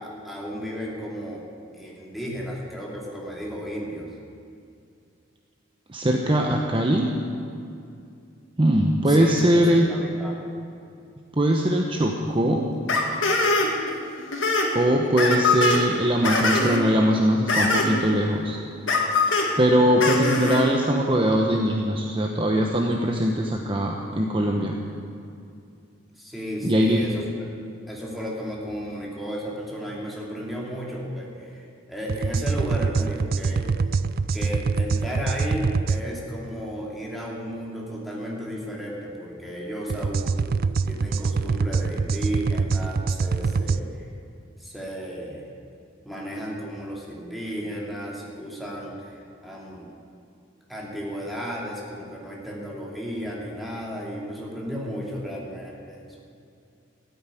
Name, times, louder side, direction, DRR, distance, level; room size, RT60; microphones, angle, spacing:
voice 1, 0.0-1.4 1.7-4.1 9.1-10.5 26.2-27.2 27.9-33.7 34.3-40.4 40.8-44.1 44.6-45.5 46.0-49.9 50.7-56.1, equal, ahead, -4 dB, 2.7 m, -34 dB
voice 2, 5.9-7.1 8.6-9.9 11.4-12.7 14.7-18.6 19.6-24.8 26.6-27.1, equal, 25° right, 1 dB, 0.9 m, -21 dB
sound 1, 12.9-13.9 14.2-14.7 15.2-15.8 16.2-16.8 17.5-18.0 18.9-19.5 20.0-20.6, left 3 dB, 75° left, 2.4 m, -22 dB
sound 2, 32.1-36.0 39.9-43.8, right 4 dB, 50° right, 0.4 m, -25 dB
13.5 x 9.4 x 9.9 m, 2.5 s
head